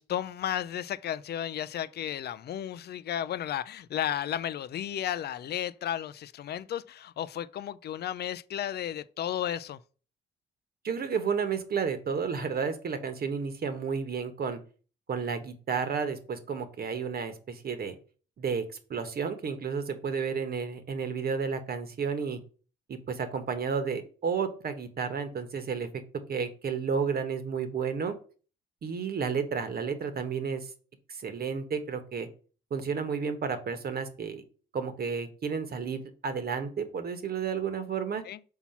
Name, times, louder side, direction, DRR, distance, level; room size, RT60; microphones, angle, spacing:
voice 1, 0.0-9.8 38.2-38.4, left 10 dB, 55° left, 0.5 m, -33 dB
voice 2, 10.8-14.6 15.1-17.9 18.4-18.6 18.9-22.4 22.9-25.9 26.3-28.1 28.8-30.7 31.2-32.3 32.7-34.4 34.7-38.2, right 6 dB, 50° right, 1.2 m, -32 dB
5.8 x 4.2 x 5.7 m
cardioid pair, 90°, 20 cm